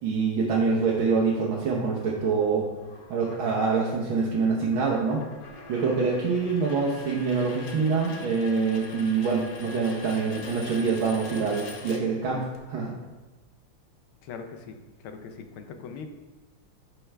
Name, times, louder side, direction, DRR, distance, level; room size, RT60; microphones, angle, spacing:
voice 1, 0.0-2.7 3.1-5.2 5.7-12.9, right 4 dB, 75° right, -3 dB, 1.7 m, -25 dB
sound 1, 2.0-12.6, left 3 dB, 65° left, 1.2 m, -44 dB
voice 2, 14.2-16.1, left 5 dB, 80° left, 6 dB, 1.6 m, -41 dB
11.0 x 4.5 x 3.3 m, 1.1 s
omnidirectional pair, 2.3 m